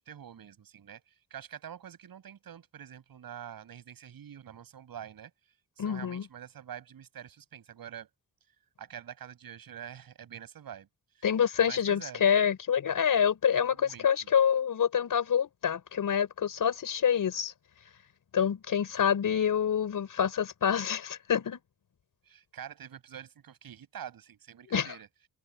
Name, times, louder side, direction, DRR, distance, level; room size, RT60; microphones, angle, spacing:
voice 1, 0.0-5.3 5.8-8.1 8.8-10.9 11.1-11.3 11.6-12.2 13.7-14.3 22.3-25.3, right 9 dB, 75° right, 7.8 m, -46 dB
voice 2, 5.8-6.3 11.2-17.5 18.3-21.6 24.7-24.9, left 8 dB, 65° left, 5.2 m, -27 dB
wide cardioid pair, 145°, 36 cm